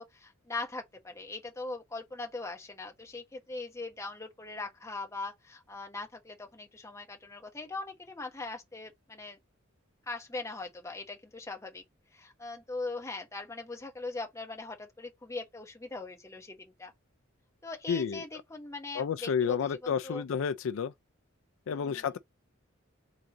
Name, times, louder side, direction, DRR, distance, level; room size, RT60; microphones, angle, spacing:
voice 1, 0.0-9.4 10.1-11.8 12.1-16.9 17.6-20.2 21.7-22.1, left 3 dB, 15° left, 1.0 m, -41 dB
voice 2, 17.9-18.2 18.9-20.9 21.7-22.2, left 7 dB, 70° left, 0.3 m, -30 dB
3.8 x 3.7 x 2.9 m
head